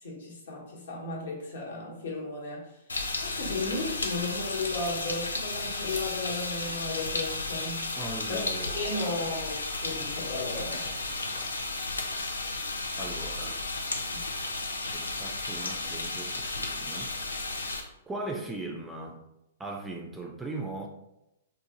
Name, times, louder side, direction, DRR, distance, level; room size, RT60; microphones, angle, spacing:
voice 1, 0.0-2.7 3.2-7.9 8.3-10.8 14.1-14.2, left 2 dB, 70° left, -3 dB, 1.0 m, -35 dB
sound 1, 2.9-17.8, left 3 dB, 85° left, 0.4 m, -33 dB
voice 2, 8.0-9.3 10.7-11.5 13.0-13.6 14.9-17.1 17.6-19.2 19.6-20.9, right 2 dB, 10° right, 1 dB, 0.4 m, -39 dB
2.6 x 2.0 x 2.9 m, 0.86 s
figure-of-eight pair, 115°, 0 cm